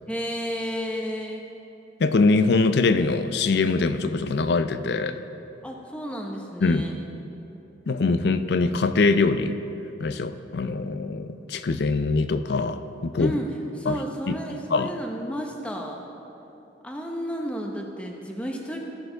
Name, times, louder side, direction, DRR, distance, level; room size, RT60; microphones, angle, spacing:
voice 1, 0.1-1.4 5.6-6.9 13.2-13.5 13.8-16.0 16.8-18.8, equal, 5° left, 1 dB, 0.8 m, -32 dB
voice 2, 2.0-5.2 6.6-6.9 7.9-9.6 10.0-13.3 13.9-14.0 14.3-14.4 14.7-14.9, left 3 dB, 60° left, 11 dB, 0.4 m, -23 dB
15.5 x 6.7 x 3.9 m, 2.9 s
head